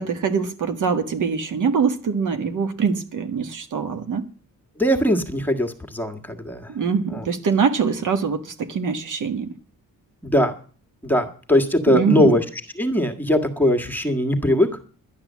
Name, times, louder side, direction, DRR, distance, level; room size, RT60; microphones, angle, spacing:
voice 1, 0.0-4.2 6.7-9.5 11.9-12.4, right 6 dB, 65° right, 7 dB, 1.6 m, -23 dB
voice 2, 4.8-6.7 7.1-7.3 10.2-10.5 11.0-12.4 12.7-14.8, left 1 dB, 5° left, 5 dB, 1.7 m, -20 dB
11.5 x 10.0 x 7.4 m, 0.42 s
cardioid pair, 110°, 33 cm